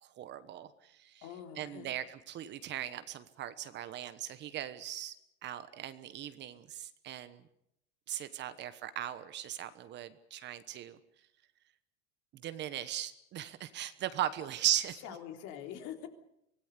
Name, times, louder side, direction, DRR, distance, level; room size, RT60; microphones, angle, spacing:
voice 1, 0.0-1.3 1.6-5.2 5.4-7.4 8.1-11.0 12.3-15.0, right 11 dB, 35° right, 12 dB, 1.2 m, -38 dB
voice 2, 1.2-1.9 15.0-16.1, left 10 dB, 55° left, 5 dB, 3.6 m, -44 dB
25.0 x 18.0 x 8.3 m, 0.80 s
supercardioid pair, 155°, 31 cm